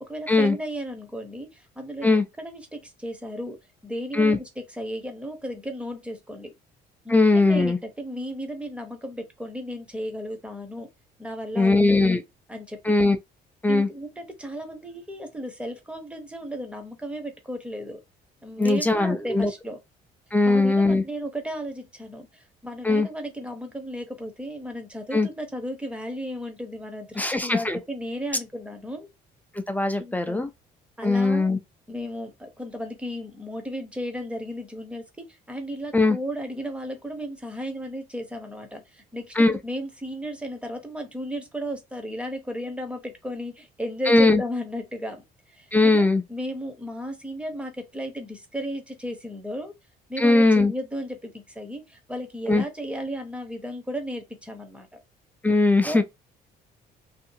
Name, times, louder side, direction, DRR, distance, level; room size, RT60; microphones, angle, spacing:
voice 1, 0.0-3.6 3.8-6.5 7.0-10.9 11.2-12.2 12.5-12.9 13.7-18.0 18.4-19.8 20.4-29.1 30.0-30.4 31.0-31.5 31.9-45.2 45.5-46.0 46.3-49.7 50.1-55.0 55.9-56.0, equal, 5° right, 0.9 m, -34 dB
voice 2, 7.1-7.8 11.6-12.2 12.8-13.2 13.6-13.9 18.6-19.5 20.3-21.0 22.8-23.1 25.1-25.3 27.2-27.8 29.7-30.5 31.0-31.6 35.9-36.2 39.4-39.6 44.1-44.4 45.7-46.2 50.2-50.7 52.5-52.6 55.4-56.0, left 2 dB, 10° left, 0.4 m, -20 dB
2.7 x 2.4 x 2.7 m
cardioid pair, 110°, 17 cm